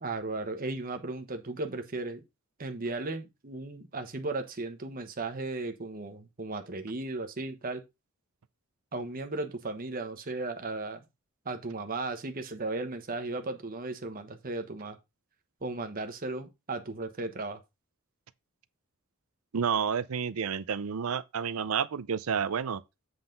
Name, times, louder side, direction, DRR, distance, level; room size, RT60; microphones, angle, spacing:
voice 1, 0.0-2.2 2.6-7.8 8.9-11.0 11.4-15.0 15.6-17.6, right 2 dB, 40° right, 1.1 m, -36 dB
voice 2, 19.5-22.8, right 7 dB, 75° right, 0.5 m, -30 dB
7.8 x 4.1 x 5.2 m
head